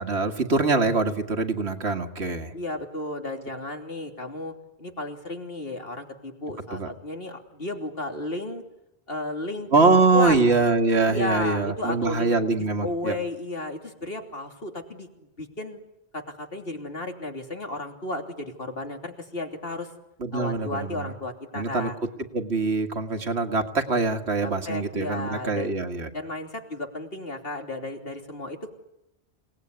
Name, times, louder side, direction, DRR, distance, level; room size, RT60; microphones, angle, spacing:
voice 1, 0.0-2.5 6.7-6.9 9.7-13.2 20.2-21.1 21.5-21.9 22.3-26.1, right 3 dB, 85° right, 6 dB, 2.2 m, -23 dB
voice 2, 2.5-4.5 4.8-8.6 9.1-10.6 11.1-15.8 16.1-19.9 20.3-22.0 24.4-25.8 26.1-28.7, left 2 dB, 65° left, 4 dB, 3.5 m, -33 dB
28.5 x 19.0 x 9.7 m, 0.89 s
omnidirectional pair, 1.1 m